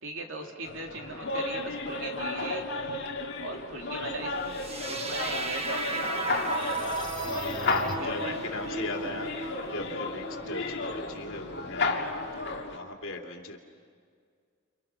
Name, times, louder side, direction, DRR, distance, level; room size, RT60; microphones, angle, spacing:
voice 1, 0.0-2.6 3.4-4.4 4.9-6.1 7.8-8.4 9.0-9.2, right 2 dB, 70° right, 2 dB, 3.0 m, -39 dB
sound 1, 0.6-12.8, left 3 dB, 55° left, 2.2 m, -33 dB
sound 2, 4.5-12.5, right 3 dB, 30° right, 1.3 m, -36 dB
sound 3, 4.8-8.3, left 2 dB, 25° left, 3.0 m, -43 dB
voice 2, 7.3-13.6, left 2 dB, 75° left, 1 dB, 3.0 m, -39 dB
29.5 x 29.5 x 5.9 m, 2.1 s
head